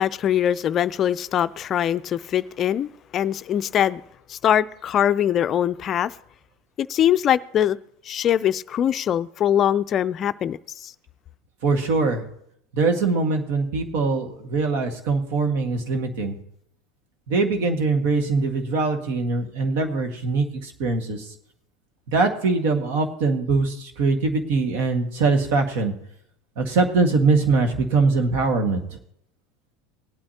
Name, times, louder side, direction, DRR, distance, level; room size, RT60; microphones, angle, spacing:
voice 1, 0.0-4.0 4.3-6.1 6.8-7.8 8.1-10.6 10.8-10.9, left 10 dB, 40° left, 0.4 m, -22 dB
voice 2, 11.6-12.2 12.7-16.4 17.3-21.2 22.1-25.9 26.6-28.8, right 3 dB, 70° right, 1.7 m, -22 dB
19.5 x 8.7 x 2.8 m
hypercardioid pair, 105°, 0 cm